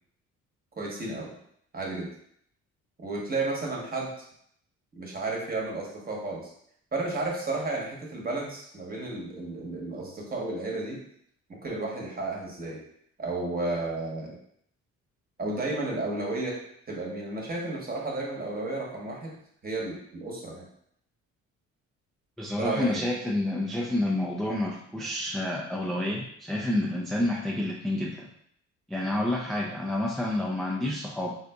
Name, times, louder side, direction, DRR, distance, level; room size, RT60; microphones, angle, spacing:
voice 1, 0.8-1.3 1.7-2.1 3.0-4.1 5.0-6.5 6.9-11.0 11.5-12.8 13.2-14.4 15.4-16.6 16.9-19.4 19.6-20.7 22.6-23.0, right 2 dB, 30° right, -2 dB, 1.0 m, -32 dB
voice 2, 22.4-28.3 28.9-31.3, left 1 dB, ahead, -3 dB, 0.3 m, -29 dB
3.7 x 2.6 x 2.3 m, 0.68 s
cardioid pair, 90°, 30 cm